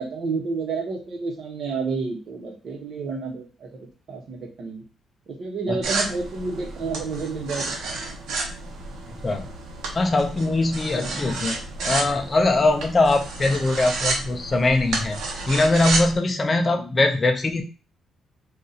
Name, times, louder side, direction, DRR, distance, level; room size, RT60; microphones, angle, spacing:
voice 1, 0.0-4.8 5.3-7.7 10.9-11.2 16.6-16.9, right 4 dB, 55° right, 1 dB, 1.0 m, -30 dB
sound 1, 5.8-16.2, right 3 dB, 85° right, 0.8 m, -30 dB
voice 2, 9.9-17.6, left 2 dB, 25° left, 5 dB, 0.4 m, -22 dB
2.7 x 2.4 x 3.9 m, 0.34 s
cardioid pair, 140°, 0 cm